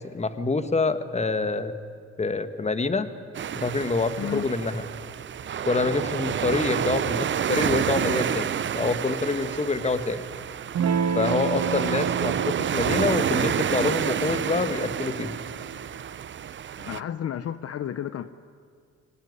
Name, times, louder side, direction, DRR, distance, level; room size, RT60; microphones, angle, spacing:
voice 1, 0.0-1.7 2.2-3.1 3.5-4.8 5.6-10.2 11.1-15.4, left 3 dB, 20° left, 11 dB, 1.5 m, -26 dB
sound 1, 3.3-17.0, right 9 dB, 40° right, 0.6 m, -29 dB
Electric guitar / Strum, 10.7-15.9, right 6 dB, 60° right, 1.8 m, -30 dB
voice 2, 16.8-18.3, left 9 dB, 50° left, 13 dB, 0.7 m, -32 dB
23.5 x 17.5 x 9.8 m, 2.3 s
cardioid pair, 90°, 30 cm